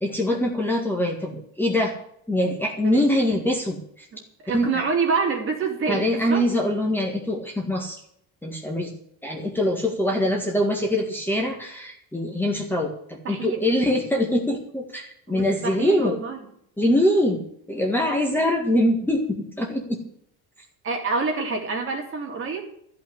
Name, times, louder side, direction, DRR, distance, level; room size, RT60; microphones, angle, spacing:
voice 1, 0.0-2.0 2.3-3.8 4.5-4.8 5.9-8.0 8.4-8.9 9.2-16.2 16.8-17.4 17.7-20.0, left 1 dB, 5° left, 0 dB, 1.8 m, -23 dB
voice 2, 4.1-6.4 13.2-13.6 15.3-16.4 20.8-22.6, right 4 dB, 35° right, 1 dB, 3.0 m, -27 dB
14.0 x 5.8 x 9.7 m, 0.69 s
cardioid pair, 165°, 37 cm